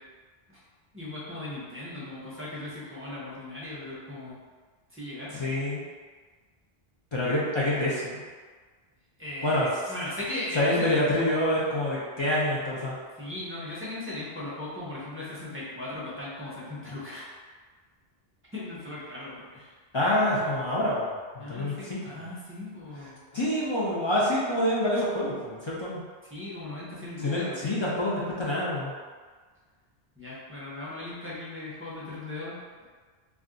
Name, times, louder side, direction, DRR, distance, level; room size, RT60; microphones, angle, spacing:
voice 1, 0.9-4.4 4.9-5.4 9.2-11.4 13.2-17.3 18.5-19.7 21.4-23.2 26.3-27.6 30.2-32.8, left 2 dB, 15° right, -9 dB, 0.6 m, -38 dB
voice 2, 5.3-5.8 7.1-8.2 9.4-9.9 10.5-13.0 19.9-22.0 23.3-26.0 27.2-28.9, left 1 dB, 40° left, -7 dB, 0.4 m, -27 dB
2.3 x 2.2 x 3.7 m, 1.5 s
omnidirectional pair, 1.1 m